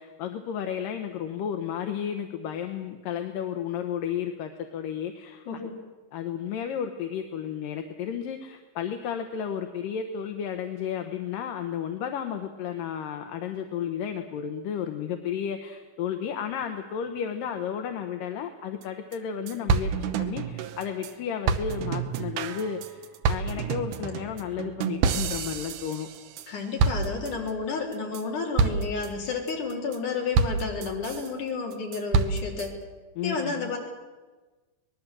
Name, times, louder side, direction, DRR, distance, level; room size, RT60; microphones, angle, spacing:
voice 1, 0.0-5.5 6.1-19.9 20.2-26.1 33.2-33.7, left 8 dB, 75° left, 6 dB, 2.7 m, -33 dB
voice 2, 5.5-5.8 26.5-32.8 33.2-33.8, left 4 dB, 60° left, 0 dB, 4.9 m, -31 dB
sound 1, 18.8-18.9 19.1-19.2 19.5-21.1 21.5-26.5 26.8-27.5 27.9-28.2 28.6-29.1 29.5-30.0 30.4-31.3 31.7-32.7, right 5 dB, 70° right, 2.3 m, -28 dB
24.5 x 20.0 x 7.6 m, 1.3 s
omnidirectional pair, 4.2 m